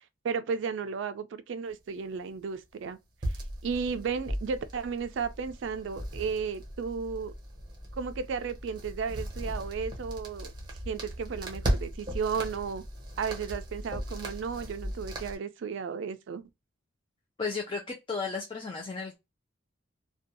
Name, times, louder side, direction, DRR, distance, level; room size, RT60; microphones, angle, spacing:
voice 1, 0.2-3.0 3.6-7.3 8.0-10.5 10.9-12.8 13.2-16.4, right 5 dB, 70° right, 0.3 m, -34 dB
sound 1, 3.2-15.3, equal, 25° right, 0.7 m, -37 dB
voice 2, 17.4-19.2, left 4 dB, 25° left, 0.4 m, -34 dB
2.5 x 2.2 x 2.5 m
head